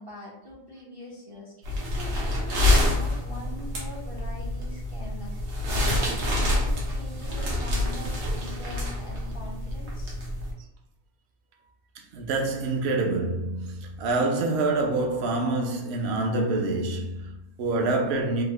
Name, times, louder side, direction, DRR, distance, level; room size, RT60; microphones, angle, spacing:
voice 1, 0.0-10.1, left 1 dB, 40° right, 0.4 m, -43 dB
sound 1, 1.6-10.5, left 1 dB, 75° right, 1.3 m, -27 dB
voice 2, 12.1-18.4, right 2 dB, 60° right, 0.8 m, -26 dB
3.5 x 2.0 x 3.2 m
omnidirectional pair, 1.4 m